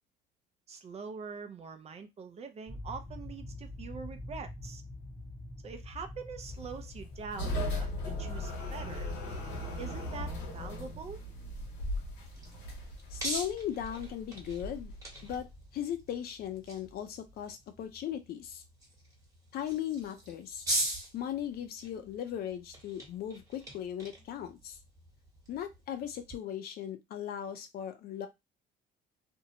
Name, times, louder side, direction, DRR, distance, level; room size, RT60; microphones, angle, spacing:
voice 1, 0.7-4.8 5.6-7.9 8.2-9.1 9.8-11.2, right 5 dB, 40° right, 8 dB, 0.5 m, -44 dB
sound 1, 2.7-17.5, left 1 dB, 5° left, 0.7 m, -48 dB
sound 2, 6.4-15.5, left 1 dB, 90° left, 1.2 m, -38 dB
sound 3, 11.9-26.4, right 1 dB, 20° right, 1.1 m, -42 dB
voice 2, 13.1-14.9 15.2-18.6 19.5-20.7 21.1-24.8 25.5-28.3, left 10 dB, 65° left, 8 dB, 0.6 m, -38 dB
2.6 x 2.1 x 2.7 m, 0.20 s
cardioid pair, 110°, 17 cm